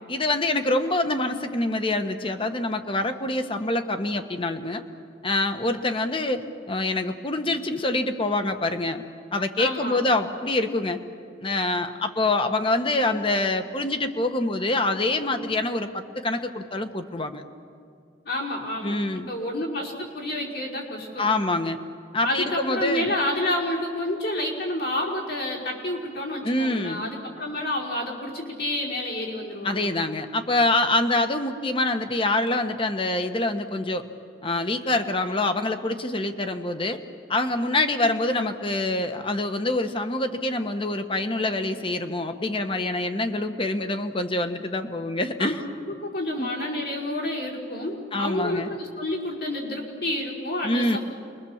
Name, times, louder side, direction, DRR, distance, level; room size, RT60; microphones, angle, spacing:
voice 1, 0.1-4.8 5.2-9.0 9.3-11.0 11.4-17.4 18.8-19.3 21.2-21.8 22.1-23.1 26.4-27.1 29.6-34.1 34.4-37.0 37.3-45.6 46.4-46.5 48.1-48.7 50.6-51.0, left 2 dB, 30° left, 7 dB, 1.4 m, -25 dB
voice 2, 9.6-10.0 18.3-21.3 22.2-29.9 45.4-45.5 45.9-51.0, left 1 dB, 65° left, -2 dB, 5.4 m, -29 dB
28.5 x 22.5 x 7.4 m, 2.3 s
head